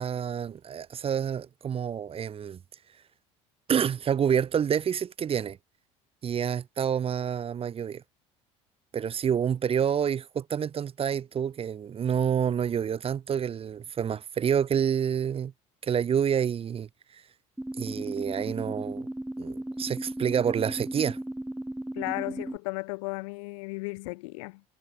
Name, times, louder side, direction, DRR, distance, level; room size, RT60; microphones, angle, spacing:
voice 1, 0.0-2.6 3.7-5.6 6.2-8.0 8.9-15.5 15.8-16.9 17.8-19.0 19.4-21.2, right 8 dB, 35° right, 0.7 m, -28 dB
sound 1, 17.6-22.6, right 1 dB, 5° right, 4.0 m, -36 dB
voice 2, 22.0-24.6, left 27 dB, 80° left, 2.3 m, -35 dB
supercardioid pair, 80°, 17 cm